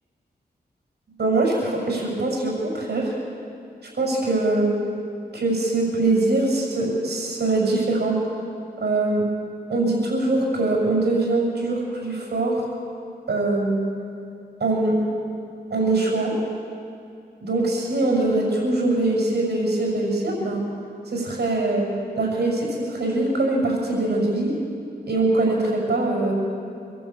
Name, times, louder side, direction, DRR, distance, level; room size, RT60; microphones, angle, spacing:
voice 1, 1.2-3.1 4.0-4.7 5.3-8.2 8.8-9.2 9.7-12.6 13.3-13.8 14.6-15.0 15.7-16.3 17.4-20.6 21.1-21.8 22.2-24.5 25.1-26.3, right 2 dB, 75° right, -2 dB, 6.7 m, -22 dB
25.5 x 11.5 x 8.7 m, 2.6 s
wide cardioid pair, 85°, 17 cm